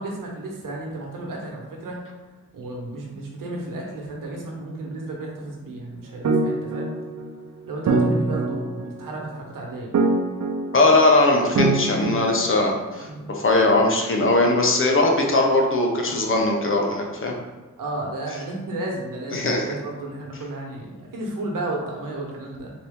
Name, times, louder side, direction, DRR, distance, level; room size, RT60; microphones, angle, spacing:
voice 1, 0.0-2.0 2.5-6.9 7.7-9.9 13.1-13.3 17.8-22.7, right 2 dB, 75° right, -1 dB, 1.1 m, -33 dB
sound 1, 6.2-13.0, right 3 dB, 55° right, 0.8 m, -24 dB
voice 2, 10.7-17.3 19.3-19.6, left 2 dB, 40° left, 1 dB, 0.8 m, -20 dB
4.0 x 2.9 x 3.6 m, 1.3 s
cardioid pair, 70°, 32 cm